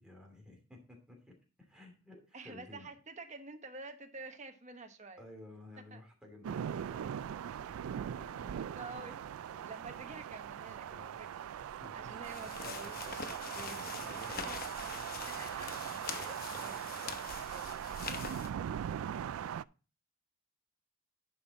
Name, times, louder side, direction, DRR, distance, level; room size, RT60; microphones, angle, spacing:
voice 1, 0.0-2.9 5.2-9.6 10.9-11.3 11.6-12.4 12.6-13.3 13.6-14.6 14.9-15.2 15.9-16.2 16.5-16.8, left 1 dB, 5° right, 0 dB, 2.8 m, -55 dB
voice 2, 2.3-5.3 5.9-6.0 8.7-9.3 9.6-11.3 11.9-12.9 13.5-14.0 14.4-14.6 15.4-15.8 16.1-18.9, right 3 dB, 35° right, 5 dB, 1.2 m, -49 dB
sound 1, 6.4-19.6, right 9 dB, 90° right, 0.3 m, -40 dB
sound 2, 12.2-18.5, left 6 dB, 45° left, 0.8 m, -44 dB
11.0 x 5.6 x 4.1 m, 0.35 s
head